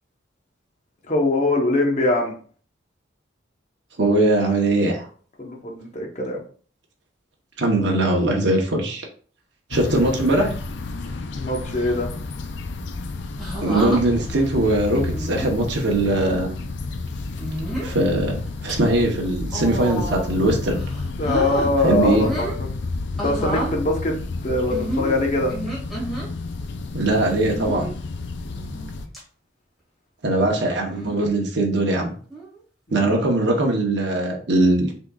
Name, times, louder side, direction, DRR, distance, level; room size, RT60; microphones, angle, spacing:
voice 1, 1.1-2.3 5.4-6.4 11.3-12.1 21.2-22.7 23.2-24.1 24.4-25.5 30.4-30.5 32.9-33.2, left 2 dB, 35° left, 1 dB, 0.9 m, -22 dB
voice 2, 4.0-5.1 7.6-9.1 9.7-10.5 13.6-16.5 17.8-20.8 21.8-22.2 26.9-27.9 30.2-32.1 32.9-34.9, right 2 dB, 60° right, 0 dB, 0.9 m, -21 dB
sound 1, 9.7-29.1, left 3 dB, 60° left, 0.5 m, -31 dB
sound 2, 13.4-14.0 14.9-15.5 16.1-16.4 17.4-17.9 18.5-18.7 19.5-20.4 20.7-21.7 22.1-22.6 23.2-23.7 24.7-26.3 27.5-27.9 28.5-28.9 29.1-29.2 30.8-31.2 32.3-32.6, right 1 dB, ahead, 1.8 m, -30 dB
5.8 x 3.6 x 2.3 m, 0.43 s
head